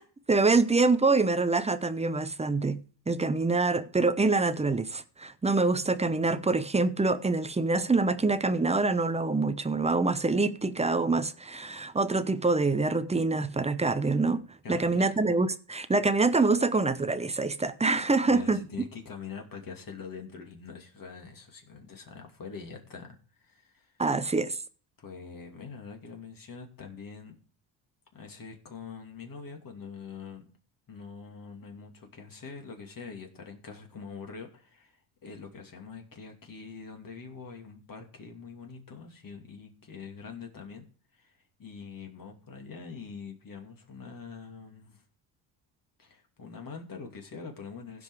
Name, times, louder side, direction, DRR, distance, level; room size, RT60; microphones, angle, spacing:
voice 1, 0.3-2.8 3.1-18.6 24.0-24.6, right 3 dB, 15° right, 0.7 m, -25 dB
voice 2, 14.6-15.2 18.3-23.9 25.0-27.4 28.1-30.4 30.9-40.9 41.1-45.0 46.0-48.0, left 5 dB, 40° left, 2.7 m, -44 dB
16.0 x 5.4 x 4.8 m
cardioid pair, 90°, 49 cm